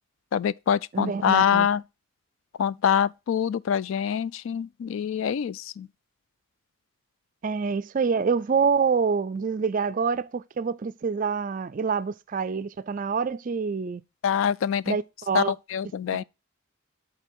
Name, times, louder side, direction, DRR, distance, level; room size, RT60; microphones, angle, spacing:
voice 1, 0.3-1.8 2.6-5.9 14.2-15.0 15.3-16.2, left 8 dB, 65° left, 0.3 m, -25 dB
voice 2, 0.9-1.7 7.4-14.0 14.9-15.5, right 5 dB, 40° right, 0.4 m, -26 dB
8.1 x 3.8 x 5.9 m
head